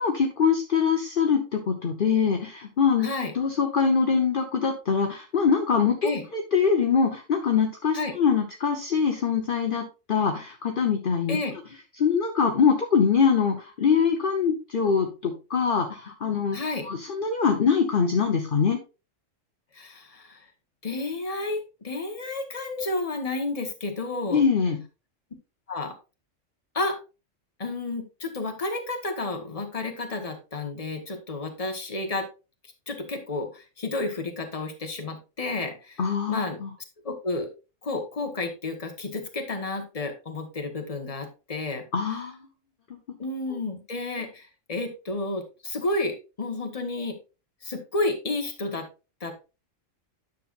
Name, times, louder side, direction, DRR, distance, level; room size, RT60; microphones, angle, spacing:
voice 1, 0.0-3.1 3.3-11.4 12.0-16.6 16.8-18.8 24.3-24.8 36.0-36.7 41.9-42.4, left 6 dB, 45° left, 3 dB, 1.1 m, -23 dB
voice 2, 3.0-3.3 6.0-6.2 7.9-8.1 11.3-11.5 16.5-16.8 19.7-20.5 20.8-24.4 25.7-26.0 26.7-27.0 27.6-32.3 32.9-36.6 37.0-37.5 37.8-41.8 43.2-47.2 47.6-48.9 49.2-49.3, left 2 dB, 30° left, 4 dB, 1.3 m, -31 dB
9.9 x 6.6 x 2.5 m, 0.30 s
omnidirectional pair, 1.3 m